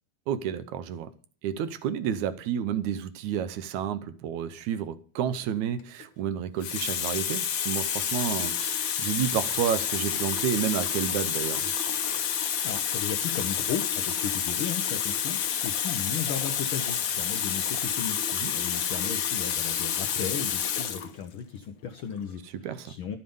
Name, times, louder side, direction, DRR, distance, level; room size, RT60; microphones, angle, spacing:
voice 1, 0.3-1.1 1.4-11.7 18.4-18.5 22.6-22.9, right 9 dB, 80° right, 2.2 m, -30 dB
Water tap faucet, 5.8-6.0 6.6-21.1 22.0-22.2, left 8 dB, 60° left, 1.2 m, -29 dB
voice 2, 12.6-23.2, left 8 dB, 85° left, 1.1 m, -36 dB
11.5 x 7.5 x 5.4 m
omnidirectional pair, 3.4 m